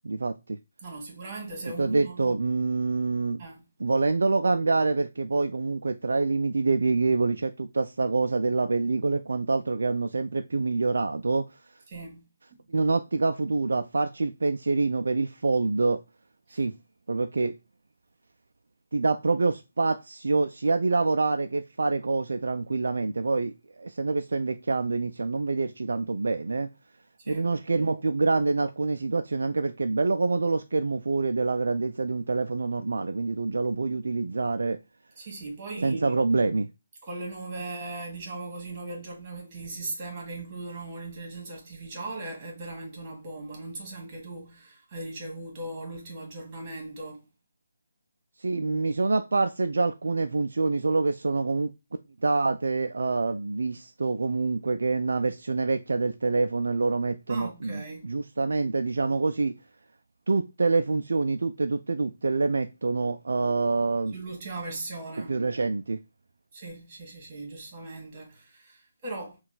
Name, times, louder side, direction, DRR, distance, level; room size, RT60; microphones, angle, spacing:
voice 1, 0.0-0.6 1.6-3.4 3.8-11.5 12.7-16.0 16.5-16.7 17.1-17.6 18.9-26.7 27.3-34.8 35.8-36.7 48.4-51.7 52.2-59.5 60.3-64.1 65.2-66.0, right 3 dB, 60° right, 0.3 m, -26 dB
voice 2, 0.8-2.4 3.4-3.7 11.9-12.2 12.5-12.6 16.5-16.6 27.2-27.5 35.2-36.1 37.0-47.3 57.3-58.1 64.1-65.4 66.5-69.4, right 2 dB, 25° right, 1.7 m, -39 dB
5.6 x 2.4 x 3.9 m
figure-of-eight pair, 150°, 0 cm